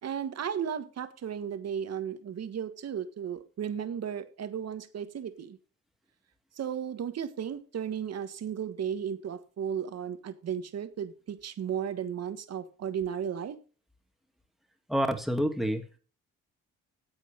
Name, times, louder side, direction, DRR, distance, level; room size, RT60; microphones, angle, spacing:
voice 1, 0.0-5.6 6.6-13.6, right 8 dB, 55° right, 10 dB, 1.5 m, -35 dB
voice 2, 14.9-16.0, equal, ahead, 5 dB, 2.1 m, -28 dB
10.0 x 8.2 x 5.2 m, 0.37 s
cardioid pair, 90°, 30 cm